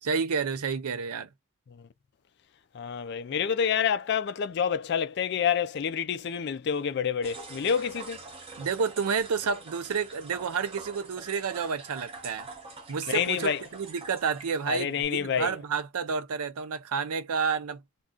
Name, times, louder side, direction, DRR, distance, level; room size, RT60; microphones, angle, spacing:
voice 1, 0.0-1.3 8.6-12.5 12.9-17.8, right 5 dB, 90° right, 0.5 m, -30 dB
voice 2, 2.7-8.2 13.1-13.6 14.7-15.6, left 7 dB, 50° left, 0.3 m, -28 dB
sound 1, 7.2-15.0, right 3 dB, 25° right, 0.6 m, -45 dB
2.4 x 2.3 x 3.6 m
head